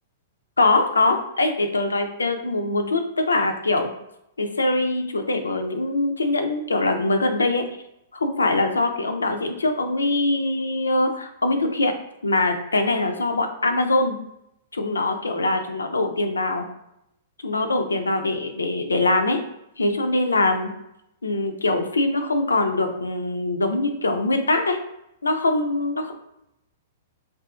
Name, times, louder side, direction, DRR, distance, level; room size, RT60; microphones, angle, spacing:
voice 1, 0.6-3.9 4.4-7.6 8.1-11.9 12.2-14.2 14.7-16.7 17.4-19.4 19.8-20.7 21.2-24.8 25.2-26.1, left 2 dB, 85° left, 6 dB, 0.3 m, -23 dB
2.6 x 2.5 x 2.3 m, 0.83 s
hypercardioid pair, 110°, 0 cm